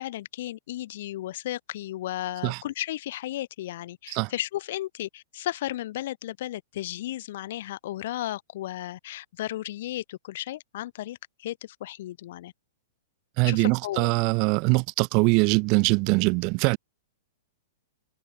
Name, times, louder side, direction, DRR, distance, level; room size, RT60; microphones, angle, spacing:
voice 1, 0.0-12.5 13.4-14.1, left 14 dB, 50° left, 2.7 m, -34 dB
voice 2, 13.4-16.8, right 32 dB, 40° right, 2.3 m, -22 dB
figure-of-eight pair, 105°, 0 cm